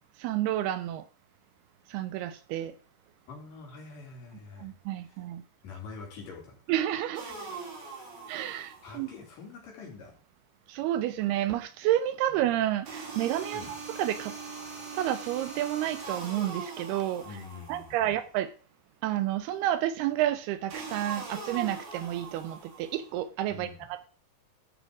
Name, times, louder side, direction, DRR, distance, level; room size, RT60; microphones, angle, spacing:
voice 1, 0.2-1.0 1.9-2.7 4.6-5.4 6.7-7.3 8.3-9.1 10.7-14.4 14.9-17.2 17.7-18.5 19.0-24.1, right 12 dB, 80° right, 2.5 m, -30 dB
voice 2, 3.3-5.2 5.6-6.5 8.8-10.1 12.3-12.4 13.5-13.7 17.2-18.1 23.5-23.9, left 4 dB, 55° left, 4.9 m, -45 dB
sound 1, 7.2-9.1 12.9-18.1 20.7-23.1, right 4 dB, 60° right, 4.6 m, -41 dB
14.0 x 5.6 x 4.9 m
omnidirectional pair, 4.8 m